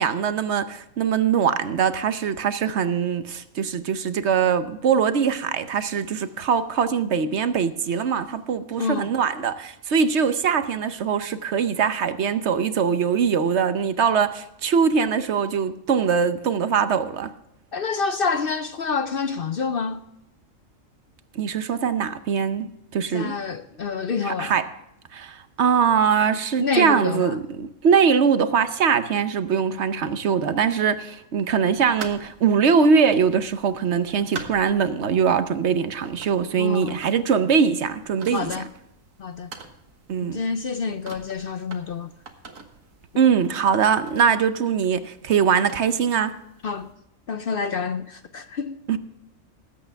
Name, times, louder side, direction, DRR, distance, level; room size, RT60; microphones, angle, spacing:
voice 1, 0.0-17.3 21.3-23.3 24.2-24.7 25.1-38.5 40.1-40.4 43.2-46.3 48.9-49.0, right 6 dB, 60° right, 1.0 m, -22 dB
voice 2, 8.8-9.1 17.7-20.0 23.1-24.5 26.6-27.4 36.6-37.0 38.3-38.7 39.2-39.5 40.2-42.1 46.6-46.9 47.3-48.8, left 5 dB, 55° left, 0.7 m, -27 dB
sound 1, 31.5-46.9, right 5 dB, 90° right, 1.8 m, -45 dB
20.0 x 8.4 x 3.4 m
omnidirectional pair, 1.3 m